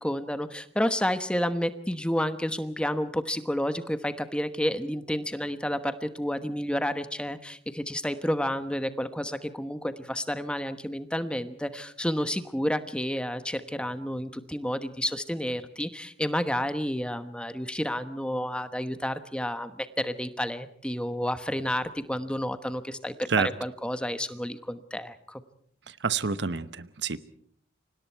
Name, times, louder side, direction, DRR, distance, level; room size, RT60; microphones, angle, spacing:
voice 1, 0.0-25.4, equal, 5° left, 11 dB, 1.1 m, -30 dB
voice 2, 25.9-27.2, right 5 dB, 70° right, 15 dB, 0.9 m, -28 dB
30.0 x 25.0 x 4.6 m, 0.62 s
head